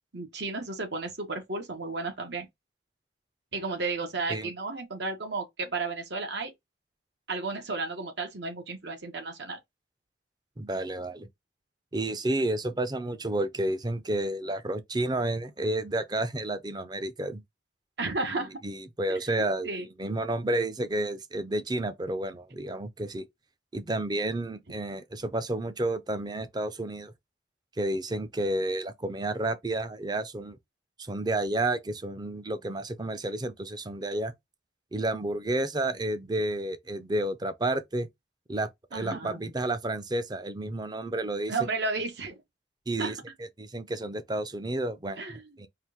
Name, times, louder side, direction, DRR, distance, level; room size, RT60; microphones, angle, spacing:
voice 1, 0.1-2.5 3.5-6.5 7.3-9.6 18.0-18.5 19.1-19.2 19.6-19.9 38.9-39.4 41.5-42.4 43.0-43.2 45.2-45.4, right 3 dB, 75° right, 1.6 m, -33 dB
voice 2, 10.6-11.3 11.9-17.4 18.6-23.3 23.7-27.1 27.8-30.6 31.0-34.3 34.9-38.1 38.5-41.5 42.9-43.2 43.6-45.2 45.6-45.7, right 1 dB, 25° right, 0.6 m, -31 dB
4.6 x 2.6 x 3.6 m
head